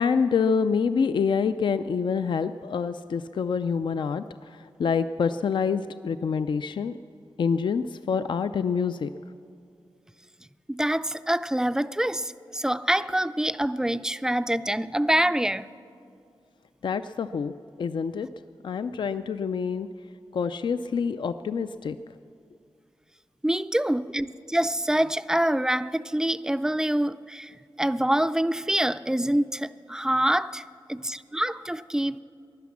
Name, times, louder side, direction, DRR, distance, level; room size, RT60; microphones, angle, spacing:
voice 1, 0.0-6.9 7.4-9.1 16.8-17.5 17.8-18.3 18.6-19.9 20.3-22.0, left 6 dB, 65° left, 0.4 m, -26 dB
voice 2, 10.7-15.7 23.4-30.6 30.9-32.2, right 1 dB, 5° right, 0.3 m, -26 dB
16.5 x 11.0 x 7.2 m
wide cardioid pair, 105°, 9 cm